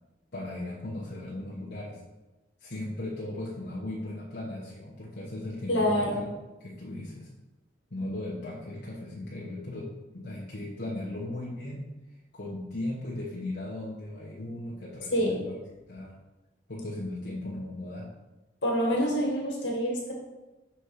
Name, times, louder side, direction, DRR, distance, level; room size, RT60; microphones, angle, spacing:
voice 1, 0.3-2.0 2.6-6.3 6.6-7.3 7.9-11.9 12.3-15.6 15.9-16.1 16.7-18.1, left 1 dB, 65° left, -6 dB, 1.1 m, -37 dB
voice 2, 5.7-6.3 15.1-15.4 18.6-20.1, equal, 85° left, -1 dB, 1.9 m, -26 dB
5.6 x 4.4 x 4.8 m, 1.1 s
head